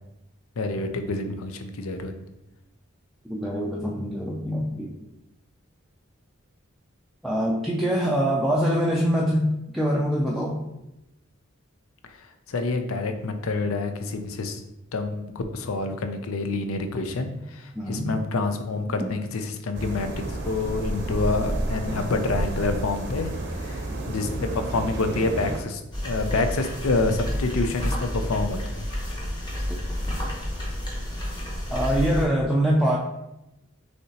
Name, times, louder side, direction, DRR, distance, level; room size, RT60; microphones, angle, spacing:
voice 1, 0.6-2.1 12.5-14.6 14.9-23.8 24.1-28.9, left 3 dB, 90° left, 7 dB, 0.5 m, -27 dB
voice 2, 3.2-5.0 7.2-10.6 17.7-18.1 19.0-19.1 29.7-29.8 31.7-33.0, equal, ahead, -5 dB, 0.3 m, -24 dB
sound 1, 19.7-25.6, right 1 dB, 55° right, 0.7 m, -30 dB
sound 2, 25.9-32.3, equal, 20° left, 0.9 m, -30 dB
6.4 x 2.8 x 2.8 m, 0.91 s
head